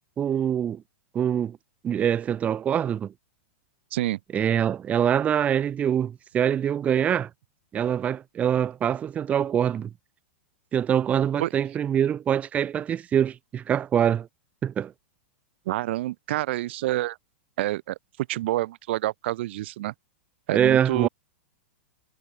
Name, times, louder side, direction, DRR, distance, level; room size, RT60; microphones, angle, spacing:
voice 1, 0.2-0.8 1.1-1.6 1.8-3.1 4.3-7.3 7.7-9.9 10.7-14.3 14.6-14.9 20.5-21.1, right 9 dB, 20° right, 0.4 m, -24 dB
voice 2, 15.7-17.2 17.6-18.0 18.3-19.9 20.5-21.1, right 16 dB, 60° right, 1.3 m, -27 dB
hypercardioid pair, 125°, 7 cm